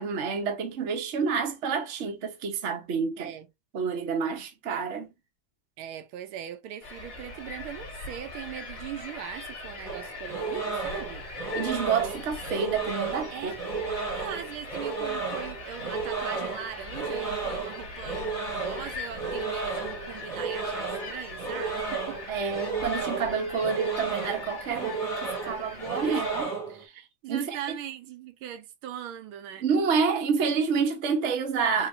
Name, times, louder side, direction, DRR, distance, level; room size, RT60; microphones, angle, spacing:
voice 1, 0.0-3.3 3.7-5.1 11.5-13.5 22.3-27.6 29.6-31.9, right 5 dB, 50° right, 0.8 m, -29 dB
voice 2, 3.2-3.5 5.8-11.3 13.3-13.6 14.1-22.2 26.0-26.3 27.2-29.7, right 10 dB, 85° right, 1.5 m, -40 dB
sound 1, 6.8-26.4, left 3 dB, 30° left, 1.4 m, -41 dB
sound 2, 9.8-26.8, right 4 dB, 20° right, 0.9 m, -33 dB
4.2 x 2.9 x 2.4 m
omnidirectional pair, 2.3 m